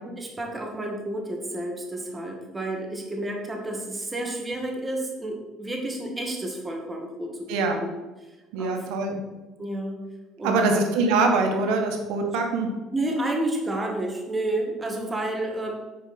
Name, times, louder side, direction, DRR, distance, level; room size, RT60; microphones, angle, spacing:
voice 1, 0.2-7.9 8.6-8.8 9.1-9.2 9.6-10.0 10.4-10.8 12.9-15.7, right 1 dB, 15° right, 1 dB, 1.9 m, -30 dB
voice 2, 7.5-7.8 8.5-9.2 10.4-12.7, right 3 dB, 85° right, 3 dB, 1.5 m, -23 dB
9.1 x 5.0 x 6.0 m, 1.1 s
cardioid pair, 125°, 0 cm